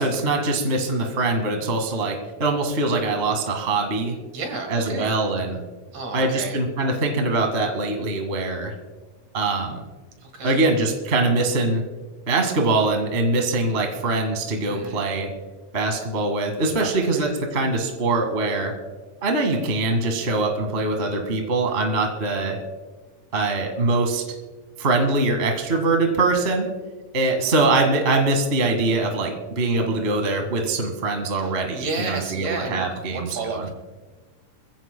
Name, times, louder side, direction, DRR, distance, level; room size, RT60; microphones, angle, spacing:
voice 1, 0.0-4.2 4.7-5.6 6.1-8.7 9.3-9.8 10.4-11.8 12.3-15.3 15.7-18.8 19.2-22.6 23.3-24.2 24.8-26.7 27.1-33.7, right 2 dB, 25° right, 3 dB, 1.5 m, -23 dB
voice 2, 4.3-5.1 5.9-6.6 10.2-10.6 14.6-15.0 16.8-17.3 31.4-33.7, right 3 dB, 60° right, 4 dB, 3.1 m, -32 dB
25.0 x 15.5 x 2.2 m, 1.3 s
omnidirectional pair, 3.5 m